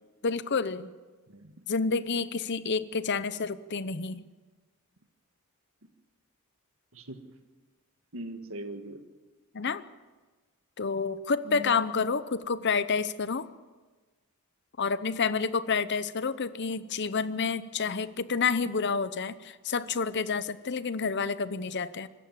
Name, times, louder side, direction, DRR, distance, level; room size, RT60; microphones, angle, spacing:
voice 1, 0.2-0.9 1.7-4.2 9.5-9.8 10.8-13.5 14.8-22.1, left 5 dB, 50° left, 15 dB, 0.8 m, -29 dB
voice 2, 1.3-1.6 6.9-7.3 8.1-9.0 11.4-11.8, right 1 dB, 65° right, 7 dB, 1.8 m, -41 dB
25.5 x 13.5 x 7.5 m, 1.3 s
head